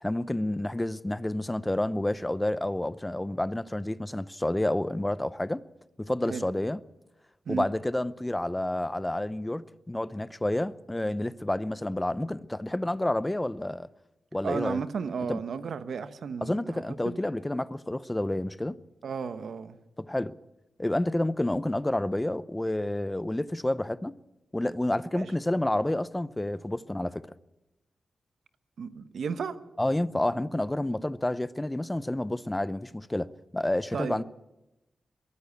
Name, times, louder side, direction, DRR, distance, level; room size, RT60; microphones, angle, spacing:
voice 1, 0.0-5.6 6.0-6.8 7.5-13.9 14.3-14.8 15.3-15.4 16.4-18.8 20.0-20.3 20.8-24.1 24.5-27.2 29.8-34.2, left 1 dB, 15° left, 0.7 m, -29 dB
voice 2, 14.4-17.2 19.0-19.8 25.1-25.3 28.8-29.6 33.9-34.2, right 6 dB, 80° right, 1.3 m, -34 dB
22.5 x 15.5 x 8.4 m
wide cardioid pair, 100°, 0 cm